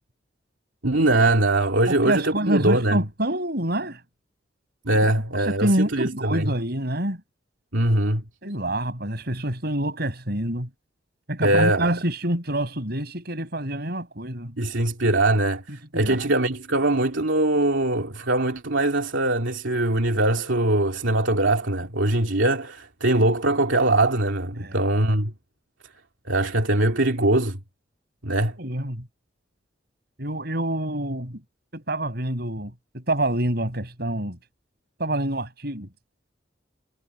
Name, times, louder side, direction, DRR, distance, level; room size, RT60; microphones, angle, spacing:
voice 1, 0.8-3.0 4.9-6.5 7.7-8.2 11.4-11.9 14.6-25.3 26.3-27.6 28.2-28.6, right 2 dB, 90° right, 2.7 m, -22 dB
voice 2, 1.9-4.0 5.0-5.1 5.5-7.2 8.4-10.7 11.3-14.5 15.9-16.3 24.6-24.8 28.6-29.1 30.2-31.4 31.7-34.4 35.0-35.9, right 1 dB, 55° right, 6.4 m, -27 dB
head